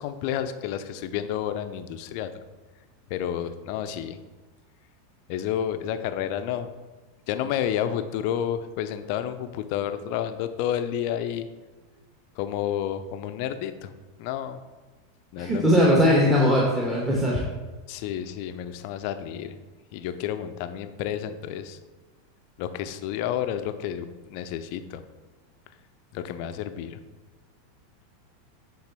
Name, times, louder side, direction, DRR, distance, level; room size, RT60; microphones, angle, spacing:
voice 1, 0.0-2.3 3.1-4.2 5.3-6.7 7.3-11.5 12.4-13.9 14.2-14.6 15.3-15.9 17.9-19.6 19.9-21.8 22.6-25.0 26.1-27.0, left 10 dB, 50° left, 9 dB, 0.5 m, -30 dB
voice 2, 15.4-17.4, equal, 10° right, -3 dB, 1.2 m, -20 dB
8.6 x 3.9 x 4.2 m, 1.2 s
figure-of-eight pair, 85°, 0 cm